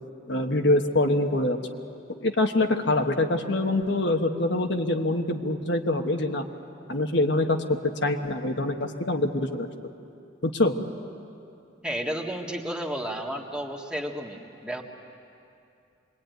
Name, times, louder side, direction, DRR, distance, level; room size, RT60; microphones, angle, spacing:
voice 1, 0.3-1.6 2.1-6.5 6.9-7.6 8.0-9.7 10.4-10.7, left 2 dB, 60° left, 4 dB, 1.3 m, -24 dB
voice 2, 11.8-14.8, equal, 5° right, 0 dB, 1.7 m, -32 dB
26.5 x 21.5 x 9.3 m, 2.6 s
head